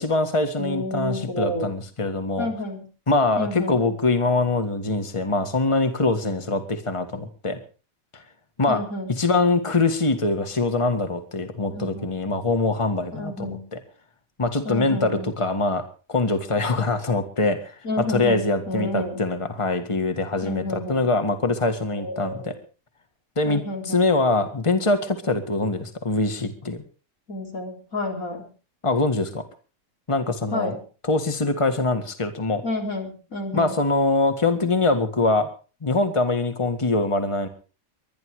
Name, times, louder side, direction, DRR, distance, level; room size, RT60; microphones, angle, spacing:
voice 1, 0.0-2.5 3.1-7.6 8.1-8.2 8.6-8.8 9.1-13.8 14.4-15.8 16.1-22.5 23.4-26.8 28.8-29.4 30.1-30.7 31.0-32.6 33.5-35.5 35.8-37.5, left 3 dB, 20° left, 9 dB, 1.8 m, -23 dB
voice 2, 0.6-1.8 2.4-2.8 3.4-3.9 8.7-9.1 11.7-12.1 13.2-13.6 14.6-15.3 17.8-19.3 20.4-21.1 21.9-22.6 23.5-24.1 27.3-28.5 30.5-30.8 32.6-33.8, left 1 dB, 90° left, 3 dB, 4.4 m, -30 dB
23.0 x 11.0 x 4.8 m, 0.37 s
omnidirectional pair, 1.4 m